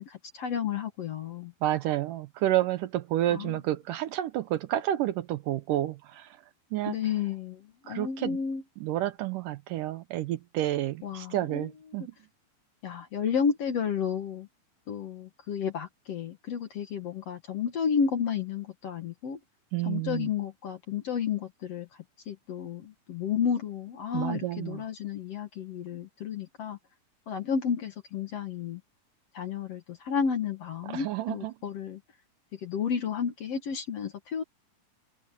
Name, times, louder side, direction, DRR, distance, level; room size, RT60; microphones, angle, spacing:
voice 1, 0.0-1.5 3.3-3.6 6.9-8.6 11.0-11.7 11.9-12.1 12.8-14.5 14.9-19.4 19.8-21.9 22.3-26.8 27.3-28.8 29.3-32.0 32.5-34.4, left 7 dB, 55° left, 2.0 m, -32 dB
voice 2, 1.6-6.3 6.7-7.0 7.9-8.4 8.8-12.1 19.7-20.3 24.1-24.8 30.9-31.5, right 14 dB, 75° right, 2.2 m, -30 dB
omnidirectional pair, 4.2 m